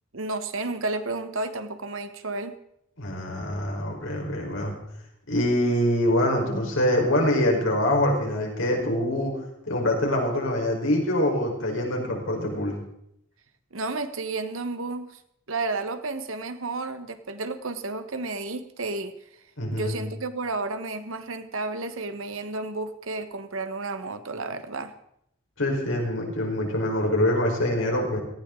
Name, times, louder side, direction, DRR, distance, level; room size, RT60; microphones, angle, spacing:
voice 1, 0.1-2.6 13.7-15.2 15.5-19.1 19.7-24.9, right 3 dB, 90° right, 10 dB, 1.3 m, -32 dB
voice 2, 3.0-4.7 5.3-9.3 9.6-12.7 19.6-19.9 25.6-28.2, left 1 dB, 80° left, 0 dB, 4.4 m, -24 dB
18.0 x 15.5 x 3.8 m, 0.76 s
head